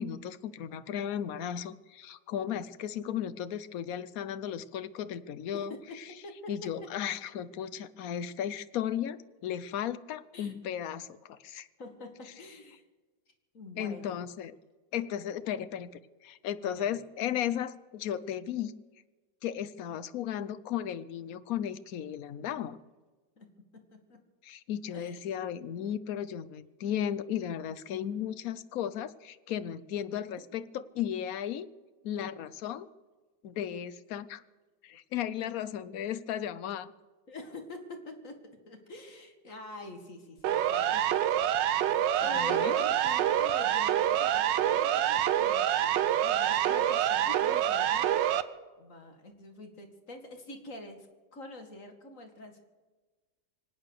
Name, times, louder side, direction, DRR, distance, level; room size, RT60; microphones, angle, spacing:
voice 1, 0.0-5.7 6.5-11.7 13.8-14.5 14.9-15.9 16.2-18.7 19.4-22.8 24.4-31.7 32.0-32.9 33.4-34.4 34.8-36.9 42.2-42.7, left 10 dB, 60° left, 14 dB, 1.1 m, -35 dB
voice 2, 5.5-6.9 10.3-10.5 11.8-12.8 13.5-14.2 16.5-17.0 23.4-24.2 24.9-25.2 37.3-38.4 38.7-41.1 41.8-45.9 46.2-52.6, left 2 dB, 45° left, 5 dB, 2.4 m, -46 dB
Siren, 40.4-48.4, right 11 dB, 80° right, 1.4 m, -26 dB
24.5 x 8.9 x 6.6 m, 1.3 s
omnidirectional pair, 1.9 m